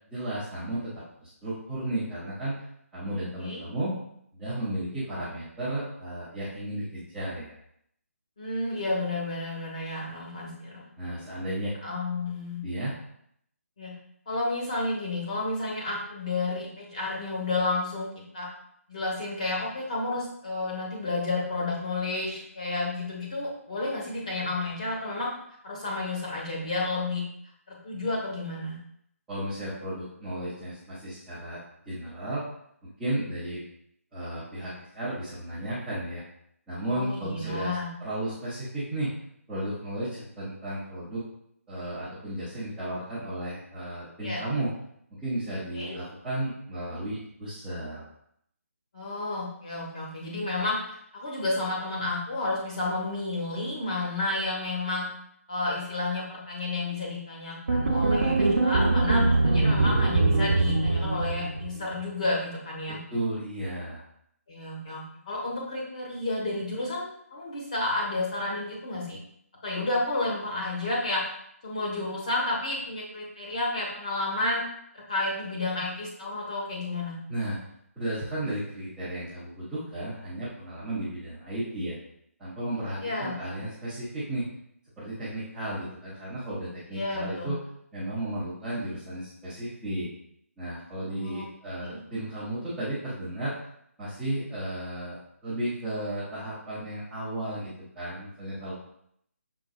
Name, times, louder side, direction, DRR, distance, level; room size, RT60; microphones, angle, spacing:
voice 1, 0.1-0.9 1.2-2.6 2.9-4.0 4.3-7.5 11.0-11.8 12.6-12.9 29.3-31.6 31.9-32.4 33.0-33.6 34.1-36.2 36.7-39.1 39.5-41.2 41.7-44.7 45.1-48.1 63.1-64.0 77.3-77.6 78.0-81.9 82.4-84.5 85.0-87.6 87.9-90.1 90.6-93.6 94.0-98.7, right 1 dB, ahead, -16 dB, 0.4 m, -33 dB
voice 2, 8.4-11.1 11.8-12.6 13.8-13.9 14.3-18.5 18.9-25.3 25.6-27.2 27.7-28.8 36.8-37.9 44.2-44.4 45.7-46.0 48.9-55.1 55.5-63.0 64.5-69.2 69.6-71.3 71.6-74.6 74.9-77.2 83.0-83.6 86.9-87.5 91.1-91.5 91.8-92.0, left 2 dB, 25° left, -3 dB, 1.2 m, -31 dB
sound 1, 57.7-61.9, right 2 dB, 45° right, 0.6 m, -23 dB
6.0 x 3.7 x 2.3 m, 0.70 s
hypercardioid pair, 175°, 8 cm